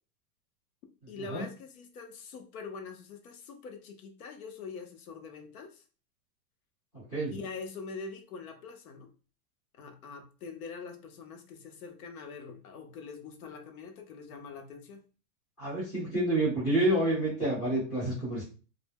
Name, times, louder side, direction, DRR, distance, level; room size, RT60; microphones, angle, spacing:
voice 1, 1.1-5.8 7.3-9.1 9.8-15.0, left 4 dB, 70° left, 5 dB, 0.7 m, -44 dB
voice 2, 6.9-7.3 15.6-18.4, right 1 dB, 5° left, -13 dB, 0.3 m, -28 dB
2.1 x 2.1 x 3.3 m, 0.36 s
supercardioid pair, 170°, 44 cm